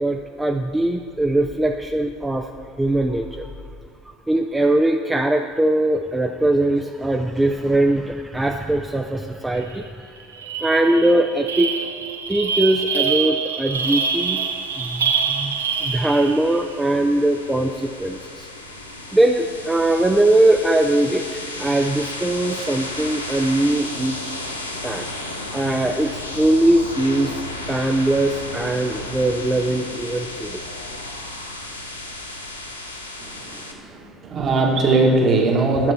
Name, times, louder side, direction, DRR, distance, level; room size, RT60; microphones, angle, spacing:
voice 1, 0.0-2.5 2.8-3.5 4.3-9.9 10.6-11.7 12.3-14.5 14.8-15.5 15.8-18.5 19.1-24.3 24.8-25.1 25.5-27.4 27.7-30.6, right 1 dB, 10° right, 3 dB, 0.4 m, -21 dB
sound 1, 9.7-9.9 10.2-16.6, right 6 dB, 75° right, 0.5 m, -25 dB
sound 2, 13.7-33.7, left 2 dB, 85° left, 0.7 m, -34 dB
voice 2, 33.2-35.9, right 3 dB, 40° right, 1 dB, 1.5 m, -20 dB
11.0 x 7.3 x 4.2 m, 2.2 s
figure-of-eight pair, 65°, 0 cm